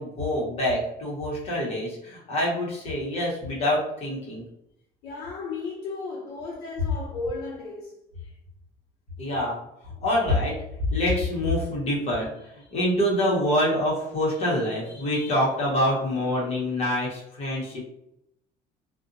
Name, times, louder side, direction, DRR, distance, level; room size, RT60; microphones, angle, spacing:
voice 1, 0.0-4.5 9.2-9.6 9.8-10.6 10.9-17.8, left 1 dB, 40° left, 1.0 m, -26 dB
voice 2, 5.0-8.0, left 3 dB, 80° left, 0.7 m, -34 dB
2.5 x 2.2 x 2.6 m
cardioid pair, 135°, 16 cm